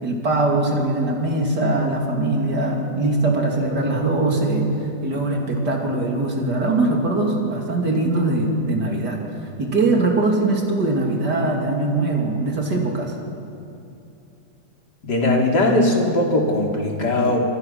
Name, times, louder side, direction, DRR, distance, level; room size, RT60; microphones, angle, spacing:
voice 1, 0.0-4.7 5.0-9.2 9.6-13.1, right 2 dB, 70° right, 0 dB, 3.7 m, -21 dB
voice 2, 15.0-17.4, left 1 dB, 70° left, -1 dB, 3.9 m, -19 dB
29.0 x 24.0 x 5.8 m, 2.6 s
omnidirectional pair, 1.9 m